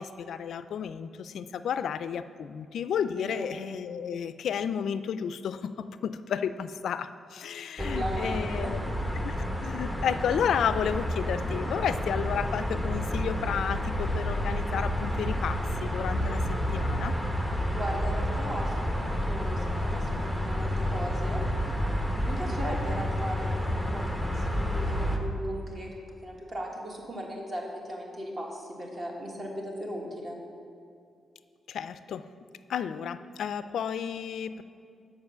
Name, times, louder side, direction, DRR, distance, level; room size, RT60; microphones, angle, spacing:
voice 1, 0.0-8.8 9.2-9.4 9.6-16.4 16.7-17.1 31.7-32.3 32.7-34.6, left 8 dB, 75° left, 12 dB, 0.3 m, -32 dB
voice 2, 3.1-3.5 7.8-8.7 17.7-21.4 22.2-30.4, equal, 35° right, -1 dB, 1.4 m, -37 dB
sound 1, 7.8-25.2, equal, 10° right, 0.8 m, -30 dB
7.1 x 5.1 x 6.7 m, 2.4 s
cardioid pair, 120°, 0 cm